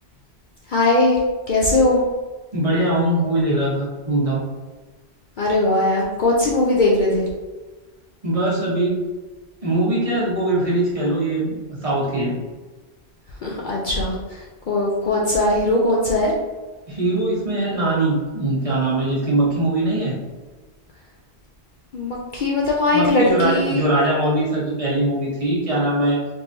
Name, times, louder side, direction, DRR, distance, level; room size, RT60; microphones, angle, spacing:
voice 1, 0.7-1.2 1.5-2.0 5.4-7.3 13.4-14.2 14.7-16.3 21.9-23.8, left 2 dB, 55° left, -3 dB, 0.6 m, -19 dB
voice 2, 2.5-4.4 8.2-9.0 9.6-12.4 16.9-20.2 22.9-26.2, right 1 dB, 35° right, -6 dB, 1.0 m, -21 dB
3.6 x 3.0 x 2.6 m, 1.3 s
omnidirectional pair, 1.1 m